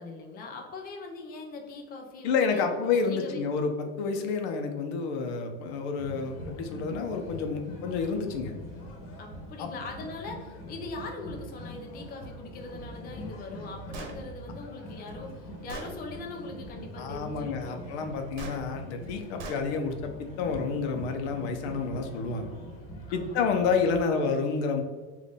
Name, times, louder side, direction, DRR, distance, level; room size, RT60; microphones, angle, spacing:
voice 1, 0.0-2.7 3.0-3.4 9.2-17.8 23.0-23.6, left 3 dB, 25° left, 2 dB, 0.6 m, -41 dB
voice 2, 2.2-3.7 4.0-8.5 9.6-9.7 17.0-22.5 23.1-24.8, left 5 dB, 75° left, 5 dB, 0.7 m, -29 dB
sound 1, 6.0-24.1, equal, 50° left, 1.2 m, -43 dB
Gunshot gunfire, 13.9-14.2 15.1-15.2 15.7-15.9 18.4-18.6 19.4-19.6, right 2 dB, 75° right, 0.9 m, -39 dB
3.9 x 2.5 x 3.5 m, 1.4 s
supercardioid pair, 140°, 33 cm